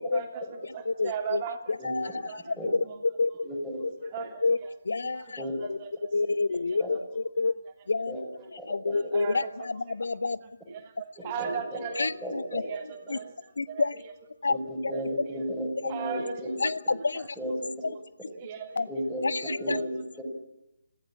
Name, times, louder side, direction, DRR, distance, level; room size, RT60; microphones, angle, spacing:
voice 1, 0.1-1.6 1.8-2.6 2.8-3.0 3.7-4.7 5.1-6.1 8.9-9.5 10.4-12.1 12.6-13.3 13.7-13.9 14.9-15.0 15.9-16.7 17.1-18.0 18.4-18.9 19.4-19.8, right 7 dB, 25° right, 3 dB, 3.1 m, -38 dB
voice 2, 0.8-1.4 1.8-2.5 3.0-3.3 4.0-4.1 4.4-4.6 4.8-5.4 5.7-5.8 6.1-7.5 7.9-8.2 8.7-10.4 12.0-12.6 13.1-13.2 13.6-14.0 14.4-14.6 15.8-15.9 16.6-17.3 17.8-17.9 18.8-18.9 19.2-19.8, left 3 dB, 60° left, 17 dB, 0.9 m, -28 dB
voice 3, 1.8-2.1 2.6-2.7 3.4-3.8 5.4-5.5 6.8-6.9 8.1-8.2 8.6-8.9 11.4-11.8 12.2-12.6 14.5-17.0 17.4-17.9 18.9-19.2 19.6-20.2, equal, ahead, -2 dB, 6.0 m, -34 dB
25.5 x 16.0 x 8.7 m, 0.89 s
figure-of-eight pair, 145°, 0 cm